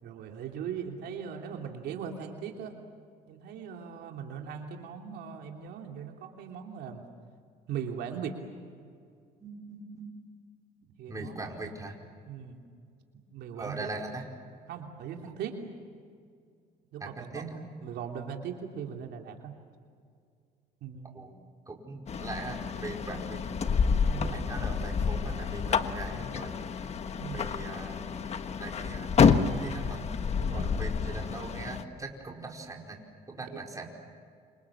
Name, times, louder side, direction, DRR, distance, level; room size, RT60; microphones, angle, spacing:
voice 1, 0.0-2.7 3.3-7.0 7.7-8.3 11.0-11.4 12.3-12.6 13.3-13.8 14.7-15.6 16.9-17.4 17.8-19.5 20.8-21.3 24.1-24.5 27.2-27.4 30.4-30.7 33.5-33.6, right 7 dB, 75° right, 2 dB, 3.1 m, -39 dB
voice 2, 9.4-10.1 11.1-11.9 13.6-14.2 17.0-17.6 21.1-21.4 21.7-23.4 24.3-26.5 27.3-30.0 30.5-33.0 33.3-33.9, right 2 dB, 20° right, 1 dB, 4.9 m, -41 dB
sound 1, 22.1-31.8, left 6 dB, 40° left, 1.5 m, -29 dB
28.5 x 26.5 x 7.4 m, 2.2 s
cardioid pair, 110°, 17 cm